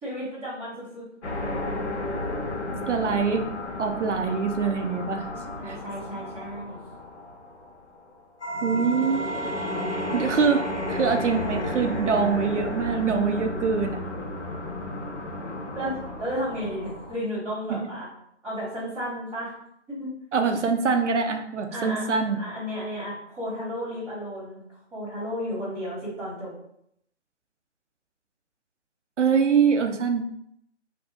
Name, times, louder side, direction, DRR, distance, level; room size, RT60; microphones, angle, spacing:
voice 1, 0.0-1.0 5.6-6.8 15.7-18.1 18.4-19.5 19.9-20.1 21.7-22.1 22.3-24.6 24.9-26.5, equal, 5° right, -17 dB, 1.0 m, -33 dB
sound 1, 1.2-8.0 8.4-17.1, left 1 dB, 70° left, 1.0 m, -32 dB
voice 2, 2.9-3.5 3.8-5.3 5.6-5.8 8.6-9.5 10.1-14.0 17.7-17.8 20.3-22.4 29.2-30.3, right 5 dB, 80° right, 5 dB, 0.5 m, -24 dB
2.7 x 2.3 x 3.7 m, 0.74 s
figure-of-eight pair, 155°, 36 cm